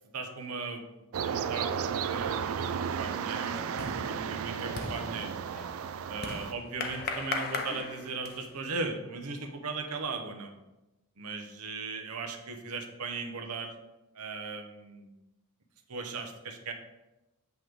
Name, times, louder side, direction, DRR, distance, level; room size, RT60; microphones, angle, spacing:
voice 1, 0.1-0.8 1.2-5.3 6.1-10.5 11.2-13.7 14.1-15.1 15.9-16.7, right 4 dB, 90° right, 4 dB, 0.9 m, -38 dB
sound 1, 1.1-6.5, right 7 dB, 65° right, 0.4 m, -33 dB
sound 2, 2.1-2.5 2.9-8.6, left 4 dB, 45° left, 0.7 m, -39 dB
8.3 x 3.1 x 5.1 m, 0.98 s
head